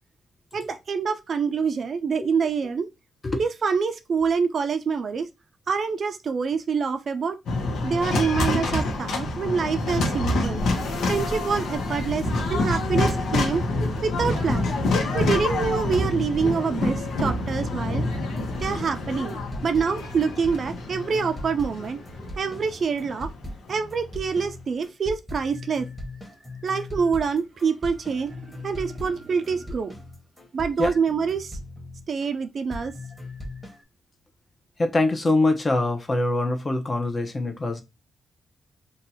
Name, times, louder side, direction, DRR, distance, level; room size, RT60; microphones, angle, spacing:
voice 1, 0.5-2.9 3.4-5.3 5.7-7.4 7.8-10.6 11.1-13.6 14.0-14.7 15.1-18.1 18.6-19.4 19.6-22.0 22.4-23.3 23.7-25.9 26.6-29.9 30.5-31.6 32.1-33.0, right 5 dB, 55° right, 0.4 m, -26 dB
sound 1, 7.5-23.7, left 2 dB, 80° left, 0.8 m, -27 dB
sound 2, 18.1-32.3 32.7-33.8, left 1 dB, 5° left, 1.1 m, -39 dB
voice 2, 34.8-37.8, left 2 dB, 30° left, 0.7 m, -23 dB
2.7 x 2.3 x 4.1 m
cardioid pair, 95°, 0 cm